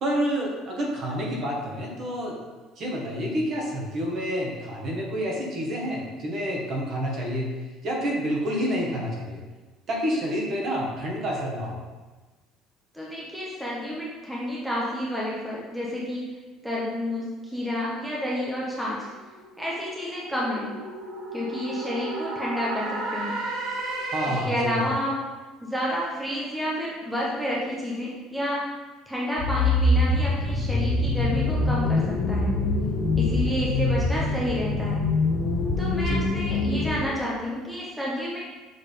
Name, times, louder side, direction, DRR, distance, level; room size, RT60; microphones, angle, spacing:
voice 1, 0.0-2.4 2.8-7.5 7.8-9.4 9.9-11.8 24.1-24.9 36.0-36.3, equal, 40° right, -2 dB, 1.3 m, -28 dB
voice 2, 12.9-16.2 16.6-19.1 19.6-20.7 21.3-23.3 24.4-25.2 25.6-28.6 29.1-32.5 33.2-35.0 35.8-38.4, equal, ahead, -6 dB, 0.9 m, -30 dB
sound 1, 18.7-24.7, right 2 dB, 65° right, 2.2 m, -34 dB
sound 2, 29.4-37.0, left 2 dB, 70° left, 1.7 m, -24 dB
6.7 x 3.6 x 5.0 m, 1.3 s
cardioid pair, 170°, 0 cm